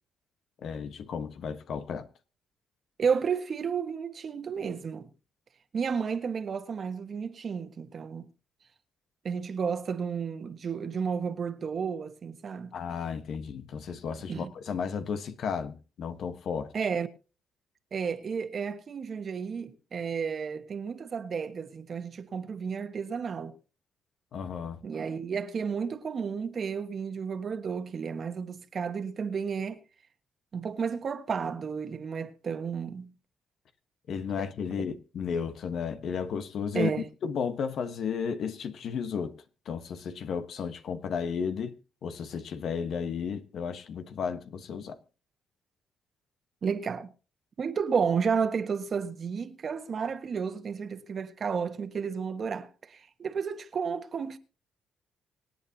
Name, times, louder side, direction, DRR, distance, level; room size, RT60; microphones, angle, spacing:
voice 1, 0.6-2.1 12.7-16.7 24.3-24.8 34.1-36.9 37.2-39.4 39.7-45.0, left 6 dB, 65° left, 1.3 m, -33 dB
voice 2, 3.0-5.1 5.7-8.2 9.2-12.8 14.3-14.5 16.7-17.1 17.9-23.5 24.8-29.8 30.5-33.1 36.7-37.1 46.6-47.1 47.6-54.4, right 6 dB, 50° right, 1.4 m, -32 dB
25.5 x 8.8 x 2.9 m
cardioid pair, 90°, 0 cm